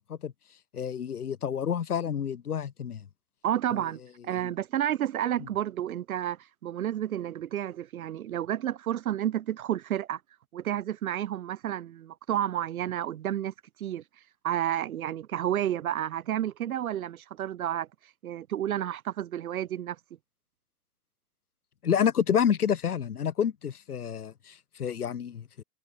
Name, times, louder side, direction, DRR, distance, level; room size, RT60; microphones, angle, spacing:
voice 1, 0.7-3.1 4.4-4.5 5.4-5.5 21.8-25.6, left 8 dB, 75° left, 2.5 m, -29 dB
voice 2, 3.4-10.2 10.5-13.5 13.8-14.0 14.4-17.9 18.2-20.0, right 11 dB, 65° right, 1.1 m, -31 dB
figure-of-eight pair, 105°, 45 cm